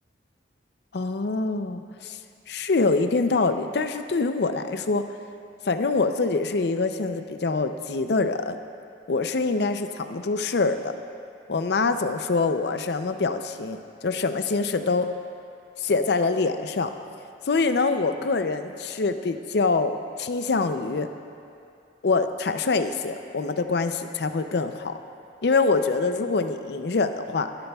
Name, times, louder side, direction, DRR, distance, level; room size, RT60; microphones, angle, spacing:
voice 1, 0.9-2.2 2.5-5.1 5.6-8.6 9.1-10.9 11.5-15.1 15.8-16.9 17.5-21.1 22.0-25.0 25.4-27.5, left 3 dB, 60° left, 9 dB, 0.5 m, -25 dB
17.5 x 13.0 x 2.3 m, 2.5 s
head